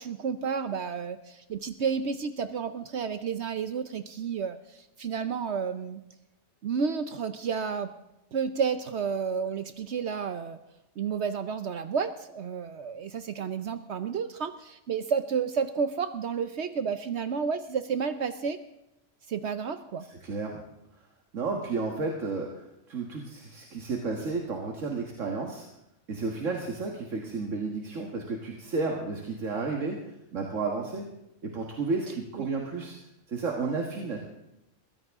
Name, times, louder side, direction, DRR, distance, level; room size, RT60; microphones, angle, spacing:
voice 1, 0.0-6.0 6.6-7.9 8.3-10.6 11.0-18.6 19.3-20.1 32.4-32.5, right 6 dB, 65° right, 10 dB, 1.0 m, -31 dB
voice 2, 20.1-20.6 21.3-25.7 26.1-30.0 30.3-31.1 31.4-33.0 33.3-34.2, right 4 dB, 85° right, 1 dB, 2.0 m, -32 dB
22.0 x 15.5 x 3.7 m, 0.89 s
omnidirectional pair, 1.3 m